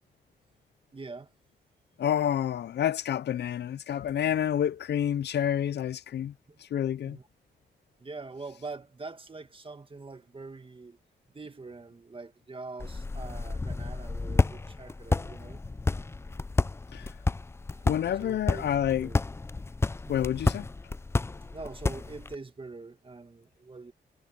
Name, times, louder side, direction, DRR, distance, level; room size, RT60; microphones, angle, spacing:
voice 1, 0.9-1.3 6.5-6.6 7.0-7.3 8.0-11.0 11.3-15.6 17.7-17.9 18.2-19.2 20.0-20.3 21.5-23.9, right 3 dB, 30° right, 1.9 m, -44 dB
voice 2, 2.0-6.3 6.6-7.2 16.9-17.1 17.9-19.1 20.1-20.7, left 10 dB, 70° left, 0.5 m, -28 dB
sound 1, 12.8-22.4, left 3 dB, 15° left, 0.3 m, -31 dB
cardioid pair, 95°, 18 cm